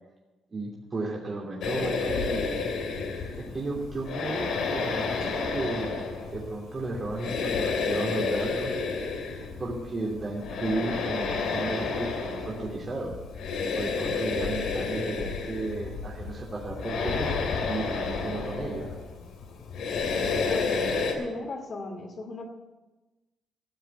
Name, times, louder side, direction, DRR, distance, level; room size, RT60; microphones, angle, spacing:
voice 1, 0.5-2.6 3.4-6.1 6.3-8.8 9.4-17.3 17.6-19.0 21.2-21.3, right 2 dB, 35° right, -3 dB, 3.0 m, -34 dB
sound 1, 1.6-21.1, left 4 dB, 80° left, 2.6 m, -31 dB
voice 2, 20.4-20.8 21.1-22.5, left 3 dB, 45° left, 2 dB, 2.5 m, -36 dB
15.0 x 7.7 x 8.2 m, 1.1 s
cardioid pair, 90°, 0 cm